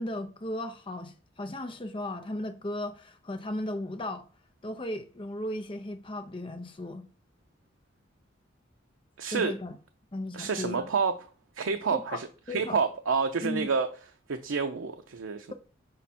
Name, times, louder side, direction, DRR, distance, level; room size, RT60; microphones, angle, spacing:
voice 1, 0.0-4.3 4.6-7.1 9.3-9.8 10.1-10.9 11.9-12.2 12.5-12.8 13.4-13.7, left 1 dB, 25° left, 0.6 m, -36 dB
voice 2, 9.2-9.5 10.3-11.2 11.6-13.9 14.3-15.5, right 5 dB, 85° right, 0.5 m, -29 dB
5.8 x 5.1 x 4.2 m
head